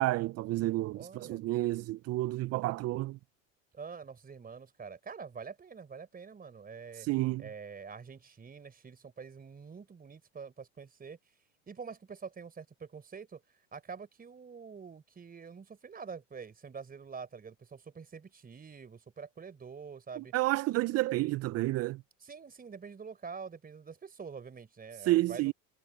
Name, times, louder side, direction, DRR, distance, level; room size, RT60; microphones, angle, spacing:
voice 1, 0.0-3.2 6.9-7.4 20.2-22.0 25.0-25.5, right 17 dB, 40° right, 0.6 m, -30 dB
voice 2, 0.9-1.4 3.7-7.1 7.4-11.2 11.7-13.4 13.7-20.3 22.2-25.5, right 5 dB, 25° right, 4.3 m, -46 dB
supercardioid pair, 100°, 38 cm